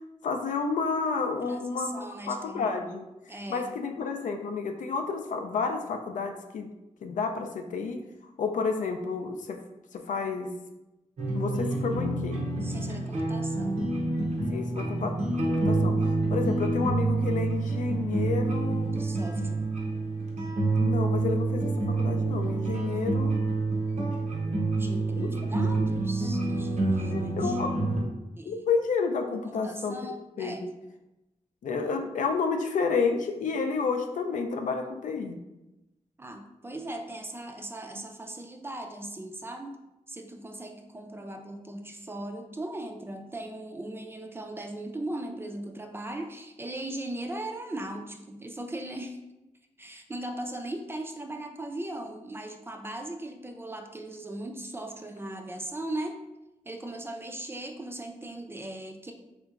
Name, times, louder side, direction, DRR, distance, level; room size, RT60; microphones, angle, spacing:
voice 1, 0.2-3.1 3.5-6.7 7.0-8.0 8.4-9.6 9.9-10.5 11.3-12.4 14.5-15.1 15.4-16.0 16.3-19.0 20.8-23.4 25.2-25.3 27.1-27.7 28.4-30.7 31.6-35.4, left 4 dB, 80° left, 5 dB, 0.4 m, -30 dB
voice 2, 1.4-2.9 3.3-3.7 12.6-13.9 16.3-16.6 18.9-19.6 22.9-23.3 24.7-27.6 28.0-28.6 29.4-30.6 36.2-39.8 40.1-49.2 49.8-56.2 56.6-59.1, right 1 dB, 20° right, 4 dB, 0.4 m, -38 dB
sound 1, 11.2-28.0, right 2 dB, 70° right, 0.7 m, -28 dB
3.4 x 2.9 x 2.4 m, 0.96 s
wide cardioid pair, 95°, 13 cm